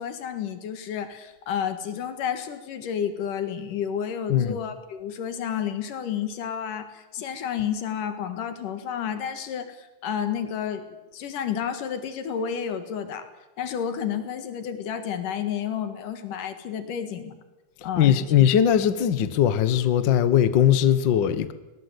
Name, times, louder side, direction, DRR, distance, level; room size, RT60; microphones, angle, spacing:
voice 1, 0.0-13.3 13.6-17.4 17.8-18.1, left 8 dB, 80° left, 3.4 m, -31 dB
voice 2, 18.0-21.5, left 9 dB, 65° left, 1.1 m, -20 dB
22.5 x 18.5 x 8.2 m
omnidirectional pair, 3.7 m